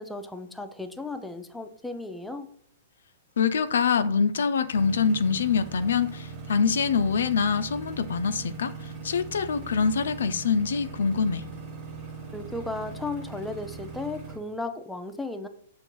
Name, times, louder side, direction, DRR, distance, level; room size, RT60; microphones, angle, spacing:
voice 1, 0.0-2.5 12.3-15.5, left 2 dB, 5° left, 0.4 m, -35 dB
voice 2, 3.4-8.7 9.0-11.4, left 6 dB, 75° left, 0.3 m, -25 dB
sound 1, 4.7-14.4, right 5 dB, 40° right, 1.2 m, -40 dB
6.4 x 2.5 x 3.0 m
hypercardioid pair, 115°, 0 cm